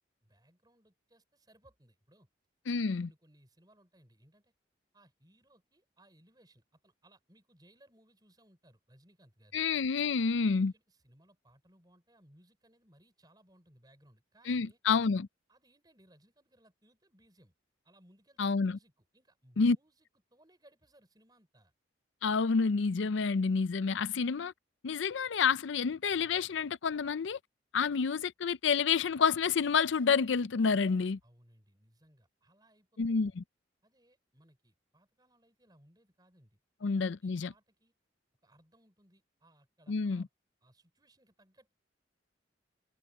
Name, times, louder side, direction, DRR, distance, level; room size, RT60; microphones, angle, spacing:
voice 1, 0.2-2.3 2.7-4.5 4.9-9.7 10.7-14.8 15.5-17.5 17.8-21.7 31.2-33.4 33.8-36.9 37.2-37.9 38.4-40.3 40.6-41.7, right 1 dB, 20° right, 5.6 m, -65 dB
voice 2, 2.7-3.1 9.5-10.7 14.5-15.3 18.4-18.8 19.6-19.8 22.2-24.5 24.8-27.4 27.7-31.2 33.0-33.4 36.8-37.5 39.9-40.2, left 5 dB, 75° left, 0.5 m, -29 dB
head